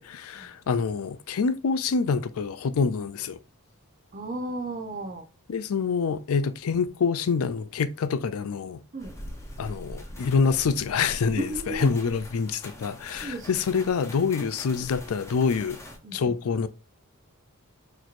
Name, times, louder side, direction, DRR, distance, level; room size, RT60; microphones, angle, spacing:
voice 1, 0.0-3.4 5.5-8.8 9.6-15.8 16.1-16.7, left 5 dB, 70° left, 0.4 m, -26 dB
voice 2, 4.1-5.2 8.9-9.1 11.4-11.9 13.2-13.6 16.0-16.3, right 2 dB, 35° right, 0.7 m, -34 dB
sound 1, 9.0-16.0, left 1 dB, 15° left, 0.6 m, -43 dB
4.2 x 3.0 x 2.5 m
head